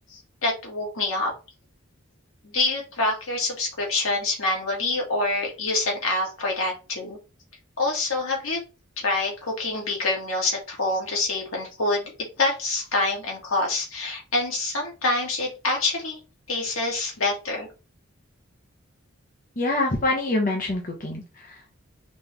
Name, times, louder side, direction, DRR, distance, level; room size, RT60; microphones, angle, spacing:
voice 1, 0.4-1.3 2.4-7.2 7.8-8.6 9.0-16.2 16.5-17.7, left 2 dB, 80° left, -1 dB, 2.0 m, -26 dB
voice 2, 19.6-21.8, left 2 dB, 40° left, -1 dB, 1.0 m, -26 dB
4.2 x 3.3 x 3.3 m, 0.31 s
head